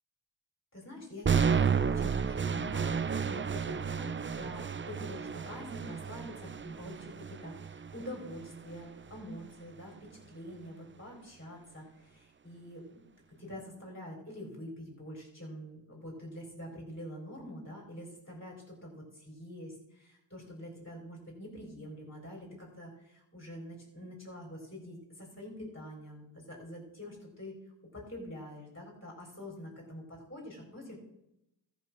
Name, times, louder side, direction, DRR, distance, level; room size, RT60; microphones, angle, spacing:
voice 1, 0.7-12.9 13.4-27.5 27.9-31.0, left 1 dB, 25° left, -1 dB, 4.1 m, -46 dB
sound 1, 1.2-9.3, right 6 dB, 25° right, 0.5 m, -32 dB
13.5 x 5.6 x 6.0 m, 0.84 s
cardioid pair, 65°, 45 cm